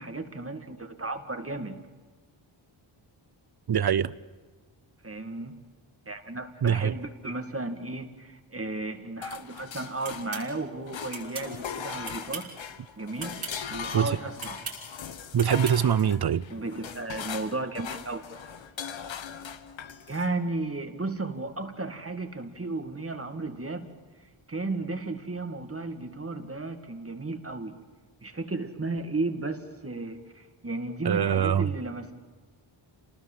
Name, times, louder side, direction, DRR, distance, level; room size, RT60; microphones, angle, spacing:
voice 1, 0.0-1.8 5.0-5.6 6.1-12.5 13.0-13.4 13.7-14.6 16.5-18.4 20.1-23.9 24.5-27.8 28.2-32.1, right 2 dB, 30° right, 2.2 m, -34 dB
voice 2, 3.7-4.1 6.6-7.0 13.9-14.2 15.3-16.4 31.0-31.7, right 8 dB, 50° right, 0.8 m, -23 dB
sound 1, 9.2-10.5 10.9-20.3, left 7 dB, 70° left, 1.3 m, -40 dB
sound 2, 10.0-10.5 11.1-11.5 12.0-12.6 13.2-13.6 14.4-14.8 15.4-15.8, right 5 dB, 75° right, 5.9 m, -38 dB
27.5 x 19.5 x 7.5 m
cardioid pair, 65°, 48 cm